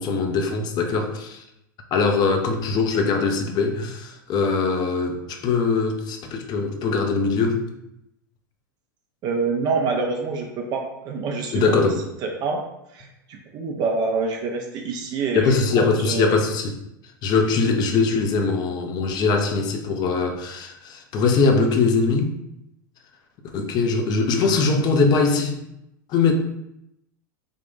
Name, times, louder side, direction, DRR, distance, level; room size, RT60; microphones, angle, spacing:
voice 1, 0.0-1.4 1.9-7.6 11.5-12.0 15.3-16.7 17.2-22.3 23.5-25.6 26.1-26.3, left 4 dB, 40° left, 4 dB, 0.6 m, -21 dB
voice 2, 9.2-11.8 12.2-12.6 12.9-16.4, right 4 dB, 40° right, 2 dB, 0.5 m, -26 dB
3.6 x 2.4 x 3.7 m, 0.83 s
hypercardioid pair, 90°, 11 cm